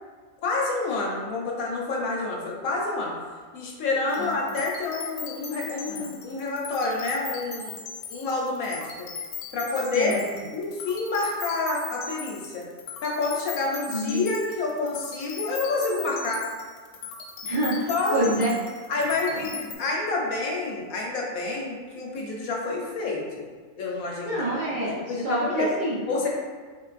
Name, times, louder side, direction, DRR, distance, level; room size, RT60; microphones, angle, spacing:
voice 1, 0.4-3.1 3.5-7.8 8.1-9.1 9.5-10.3 10.5-12.7 13.0-16.4 17.9-18.3 18.9-23.5 23.8-24.8 25.1-25.7 26.1-26.3, left 3 dB, 65° left, -2 dB, 1.0 m, -28 dB
sound 1, 4.1-19.7, left 5 dB, 85° left, 1.3 m, -39 dB
voice 2, 13.9-14.2 17.4-18.5 19.3-19.4 24.2-26.0, right 1 dB, 50° right, -10 dB, 0.6 m, -27 dB
4.1 x 3.7 x 2.4 m, 1.5 s
omnidirectional pair, 1.7 m